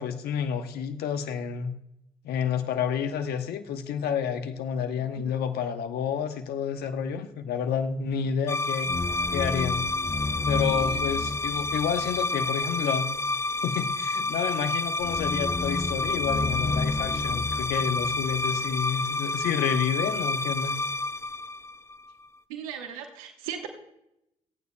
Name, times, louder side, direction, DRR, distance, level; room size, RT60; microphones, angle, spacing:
voice 1, 0.0-1.7 2.2-8.9 9.3-9.9 10.5-13.1 13.6-20.8, left 7 dB, 70° left, 8 dB, 1.1 m, -29 dB
voice 2, 5.0-5.3 10.8-10.9 22.5-23.7, right 8 dB, 85° right, 5 dB, 1.1 m, -38 dB
sound 1, 8.5-22.1, left 2 dB, 15° left, 0.4 m, -28 dB
28.0 x 9.4 x 2.2 m, 0.83 s
hypercardioid pair, 40°, 17 cm